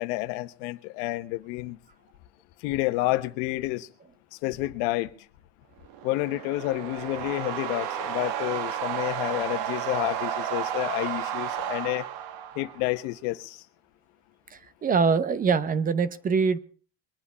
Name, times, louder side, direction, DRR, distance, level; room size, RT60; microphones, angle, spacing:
voice 1, 0.0-1.8 2.6-3.9 4.4-5.1 6.0-12.1 12.5-13.6, left 18 dB, 70° left, 1.2 m, -29 dB
sound 1, 5.9-13.0, right 10 dB, 60° right, 1.6 m, -32 dB
voice 2, 14.5-16.6, right 5 dB, 25° right, 0.7 m, -24 dB
22.5 x 8.7 x 5.5 m
supercardioid pair, 125°, 37 cm